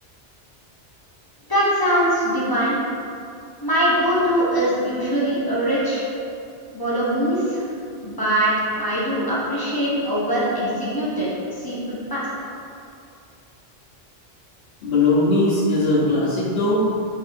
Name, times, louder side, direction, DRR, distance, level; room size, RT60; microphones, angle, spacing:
voice 1, 1.5-2.8 3.6-6.0 6.7-7.6 8.0-11.3 11.6-12.2, equal, 25° left, -8 dB, 0.5 m, -22 dB
voice 2, 14.8-16.8, left 2 dB, 70° left, -11 dB, 1.0 m, -19 dB
3.7 x 2.8 x 2.5 m, 2.5 s
omnidirectional pair, 1.1 m